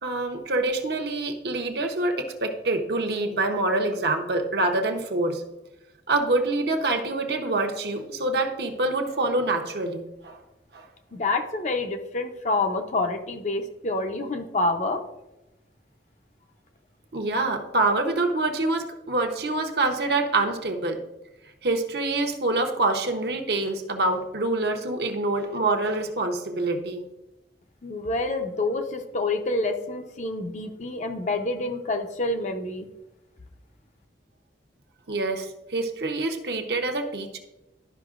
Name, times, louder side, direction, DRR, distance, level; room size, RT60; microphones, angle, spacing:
voice 1, 0.0-5.4 6.1-10.4 10.7-10.9 17.1-21.0 21.6-27.1 35.1-37.4, right 2 dB, 65° right, 4 dB, 0.8 m, -26 dB
voice 2, 11.1-15.0 27.8-32.9, left 2 dB, 40° left, 6 dB, 0.6 m, -27 dB
12.0 x 5.3 x 2.4 m, 0.95 s
head